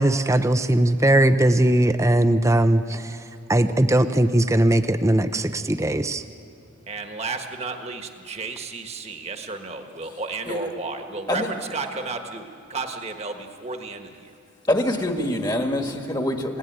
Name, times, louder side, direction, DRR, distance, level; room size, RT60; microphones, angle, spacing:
voice 1, 0.0-3.1 3.5-6.2, right 1 dB, 15° right, 10 dB, 0.6 m, -19 dB
voice 2, 6.9-14.3, right 3 dB, 30° right, 5 dB, 1.5 m, -33 dB
voice 3, 14.7-16.6, left 1 dB, 20° left, 4 dB, 1.6 m, -24 dB
30.0 x 17.5 x 9.3 m, 2.6 s
head